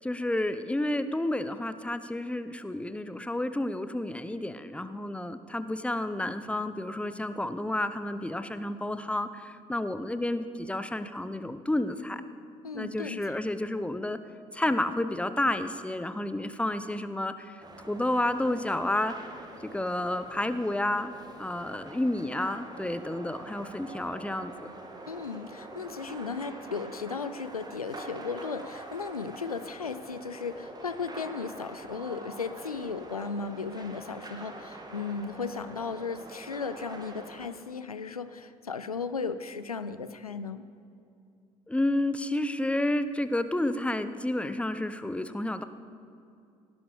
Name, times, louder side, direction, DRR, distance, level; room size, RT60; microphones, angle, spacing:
voice 1, 0.0-12.2 12.7-14.2 14.5-17.6 17.9-19.1 19.6-24.7 41.7-45.6, left 1 dB, 5° left, 12 dB, 0.7 m, -30 dB
voice 2, 12.6-13.2 25.1-40.7, left 5 dB, 90° left, 12 dB, 0.4 m, -36 dB
sound 1, 17.6-37.5, right 2 dB, 20° right, 1.8 m, -45 dB
18.0 x 11.5 x 5.0 m, 2.5 s
figure-of-eight pair, 50°, 18 cm